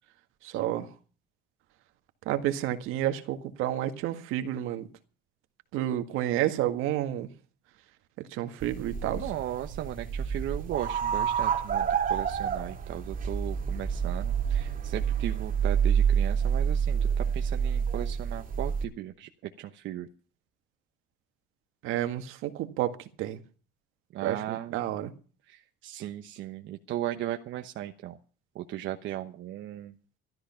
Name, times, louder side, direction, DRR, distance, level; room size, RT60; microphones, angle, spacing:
voice 1, 0.4-0.9 2.3-4.9 5.7-7.3 8.2-9.3 21.8-23.4 24.2-25.1, right 12 dB, 80° right, 8 dB, 1.8 m, -30 dB
sound 1, 8.6-18.8, right 7 dB, 40° right, 2.6 m, -28 dB
voice 2, 9.2-17.0 17.3-19.3 19.6-20.1 24.1-24.9 25.5-28.2 28.5-29.9, right 13 dB, 65° right, 6 dB, 1.1 m, -37 dB
13.0 x 13.0 x 5.7 m, 0.39 s
cardioid pair, 120°, 21 cm